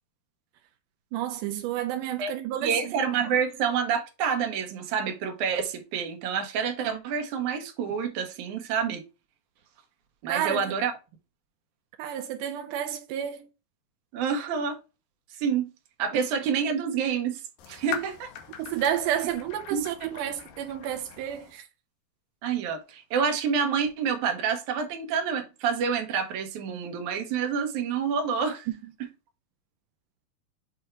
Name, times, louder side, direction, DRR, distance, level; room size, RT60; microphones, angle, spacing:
voice 1, 1.1-2.9 10.3-10.7 12.0-13.5 16.1-16.3 18.6-21.7, right 10 dB, 85° right, 1.9 m, -30 dB
voice 2, 2.6-9.0 10.2-10.9 14.1-14.8 15.4-15.7 16.0-17.4 17.7-18.3 19.7-19.9 22.4-28.7, right 6 dB, 65° right, 2.3 m, -28 dB
sound 1, 17.6-21.6, left 9 dB, 70° left, 2.5 m, -41 dB
7.8 x 2.7 x 4.5 m
omnidirectional pair, 4.4 m